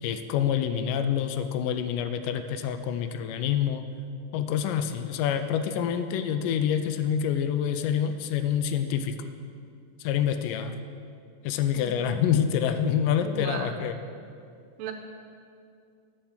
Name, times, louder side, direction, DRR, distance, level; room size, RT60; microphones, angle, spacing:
voice 1, 0.0-3.9 4.3-9.2 10.0-10.8 11.4-14.0, left 8 dB, 85° left, 9 dB, 2.2 m, -27 dB
voice 2, 11.7-12.1 13.2-13.8 14.8-14.9, right 6 dB, 85° right, 4 dB, 2.5 m, -36 dB
8.0 x 7.0 x 7.3 m, 2.4 s
omnidirectional pair, 3.8 m